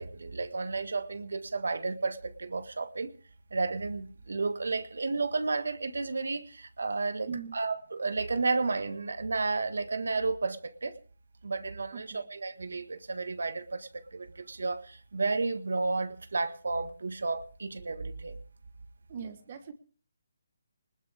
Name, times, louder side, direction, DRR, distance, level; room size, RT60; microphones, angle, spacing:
voice 1, 0.0-3.1 3.5-11.0 11.4-18.4, right 3 dB, 85° right, 1.5 m, -32 dB
voice 2, 7.3-7.6 11.9-12.2 19.1-19.7, right 6 dB, 35° right, 1.3 m, -40 dB
20.0 x 18.0 x 3.5 m
hypercardioid pair, 170°, 0 cm